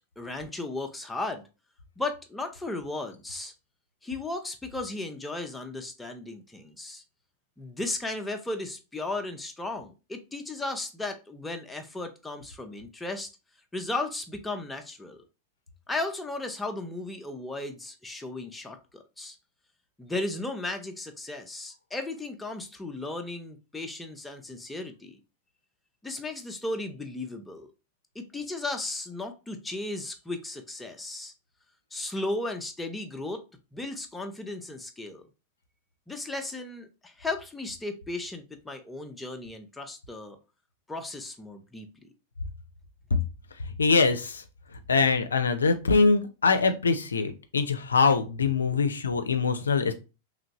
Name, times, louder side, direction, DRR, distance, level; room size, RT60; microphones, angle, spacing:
voice 1, 0.2-1.4 2.0-3.5 4.0-7.0 7.6-13.3 13.7-15.2 15.9-19.4 20.0-25.2 26.0-27.7 28.2-31.3 31.9-33.5 33.7-35.3 36.1-40.4 40.9-42.1 48.7-48.8, left 2 dB, 10° left, 5 dB, 0.6 m, -35 dB
voice 2, 43.8-44.4 44.9-49.9, left 4 dB, 90° left, 8 dB, 0.4 m, -23 dB
3.1 x 2.5 x 2.9 m, 0.30 s
hypercardioid pair, 100°, 0 cm